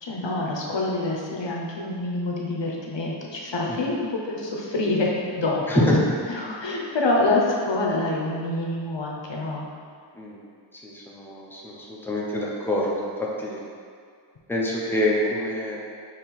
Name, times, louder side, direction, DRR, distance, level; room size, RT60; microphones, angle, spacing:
voice 1, 0.0-5.9 6.3-9.7, left 2 dB, 70° left, -2 dB, 0.7 m, -26 dB
voice 2, 10.8-13.6 14.5-15.8, left 1 dB, 5° left, -4 dB, 0.7 m, -26 dB
4.3 x 3.0 x 4.1 m, 2.2 s
wide cardioid pair, 50°, 45 cm